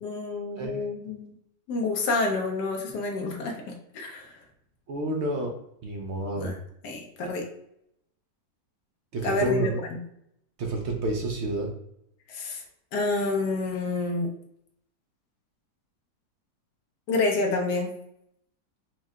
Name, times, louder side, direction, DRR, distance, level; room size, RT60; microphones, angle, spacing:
voice 1, 0.0-1.3 1.7-3.6 3.9-4.4 6.4-6.6 6.8-7.4 9.2-10.0 12.3-12.6 12.9-14.3 17.1-17.9, left 3 dB, 80° left, 1 dB, 1.3 m, -28 dB
voice 2, 0.6-0.9 4.9-5.6 5.8-6.5 9.1-9.8 10.6-11.7, right 2 dB, 65° right, 1 dB, 0.7 m, -29 dB
4.6 x 2.2 x 3.5 m, 0.75 s
omnidirectional pair, 1.8 m